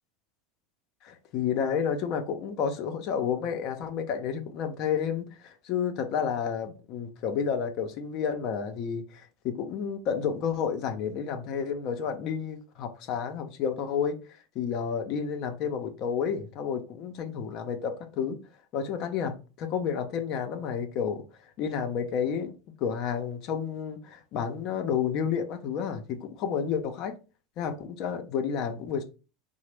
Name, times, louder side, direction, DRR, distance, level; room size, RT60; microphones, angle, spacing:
voice 1, 1.0-14.2 14.6-18.4 18.7-21.2 21.6-22.5 22.8-27.1 27.6-29.0, left 7 dB, 55° left, 0.5 m, -30 dB
2.8 x 2.0 x 3.3 m
hypercardioid pair, 100°, 0 cm